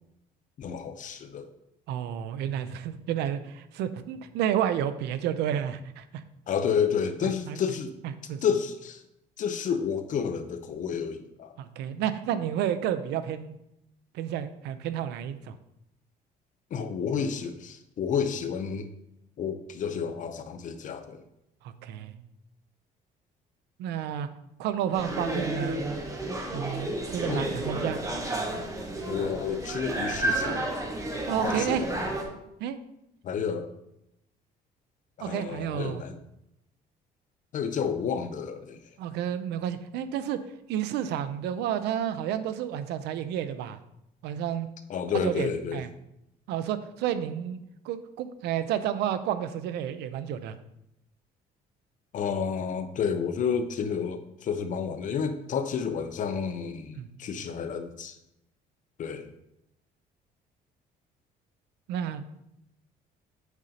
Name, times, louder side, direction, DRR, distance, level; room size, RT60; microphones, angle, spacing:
voice 1, 0.6-1.5 6.5-7.9 8.4-9.0 9.4-11.5 16.7-18.9 19.4-21.2 27.3-27.5 29.1-30.7 31.4-32.1 33.2-33.7 35.2-36.2 37.5-38.8 44.9-45.8 52.1-58.2 59.0-59.3, left 7 dB, 50° left, 9 dB, 0.7 m, -30 dB
voice 2, 1.9-6.2 7.5-7.6 8.3-8.4 11.6-13.6 14.1-15.5 21.6-22.1 23.8-24.3 24.6-25.8 26.5-28.0 31.3-31.9 32.6-32.8 35.2-36.0 39.0-40.4 40.7-43.8 44.2-44.7 45.1-45.9 46.5-50.6 56.9-57.1 61.9-62.2, right 10 dB, 85° right, 12 dB, 0.5 m, -31 dB
sound 1, 24.9-32.2, right 1 dB, 20° right, 1.2 m, -31 dB
8.0 x 5.1 x 2.8 m, 0.83 s
cardioid pair, 110°, 17 cm